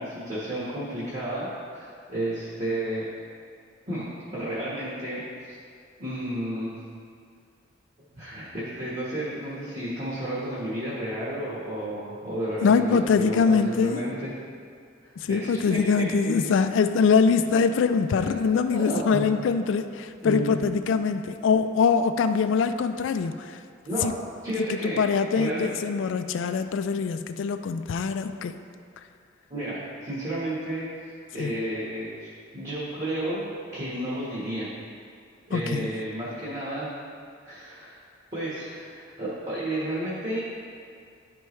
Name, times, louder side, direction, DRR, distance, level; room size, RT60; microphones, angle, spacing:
voice 1, 0.0-3.1 3.9-5.2 5.5-5.6 6.0-6.7 8.2-14.3 15.0-16.5 18.7-19.2 20.2-20.5 23.8-24.1 24.4-25.0 25.3-25.7 29.5-30.8 31.3-33.4 33.7-34.7 35.5-36.9 37.4-38.0 38.3-40.4, right 1 dB, 35° right, -8 dB, 1.4 m, -32 dB
voice 2, 12.6-14.0 15.2-23.6 24.0-24.1 24.7-28.5 31.4-31.5 35.5-35.9, left 5 dB, 65° left, 9 dB, 0.3 m, -23 dB
11.5 x 4.5 x 3.2 m, 2.3 s
head